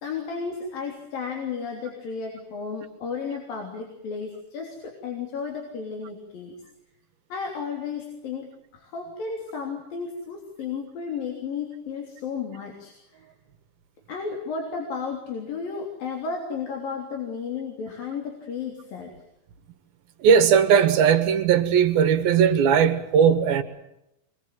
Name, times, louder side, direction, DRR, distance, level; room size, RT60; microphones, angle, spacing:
voice 1, 0.0-6.5 7.3-8.5 8.7-13.3 14.1-19.1, left 5 dB, 75° left, 5.1 m, -33 dB
voice 2, 20.2-23.6, right 7 dB, 85° right, 3.6 m, -18 dB
26.0 x 22.5 x 7.8 m
omnidirectional pair, 4.1 m